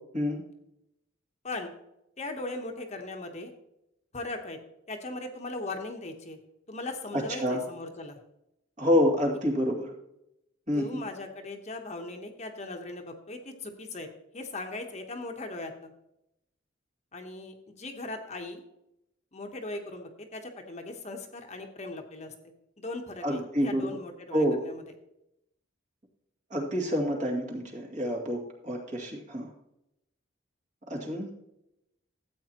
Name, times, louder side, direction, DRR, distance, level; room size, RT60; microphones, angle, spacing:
voice 1, 2.2-3.5 4.1-4.6 4.9-6.4 6.7-8.2 10.7-14.1 14.3-15.9 17.1-18.6 19.3-22.3 22.8-24.8, left 2 dB, 35° left, 4 dB, 1.0 m, -38 dB
voice 2, 7.1-7.6 8.8-9.9 10.7-11.0 23.2-24.0 24.3-24.6 26.5-29.5 30.9-31.3, equal, 40° right, -1 dB, 2.4 m, -28 dB
13.5 x 8.3 x 2.9 m, 0.83 s
head